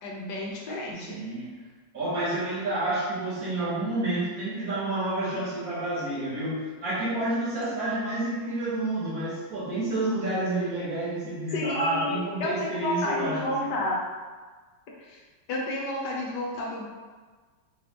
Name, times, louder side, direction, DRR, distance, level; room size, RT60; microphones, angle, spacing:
voice 1, 0.0-1.2 11.5-14.0 15.1-15.2 15.5-16.8, left 1 dB, 75° left, -2 dB, 1.5 m, -31 dB
voice 2, 0.9-1.6 1.9-13.7, right 2 dB, 55° right, -8 dB, 1.5 m, -29 dB
4.2 x 3.8 x 3.0 m, 1.4 s
omnidirectional pair, 1.9 m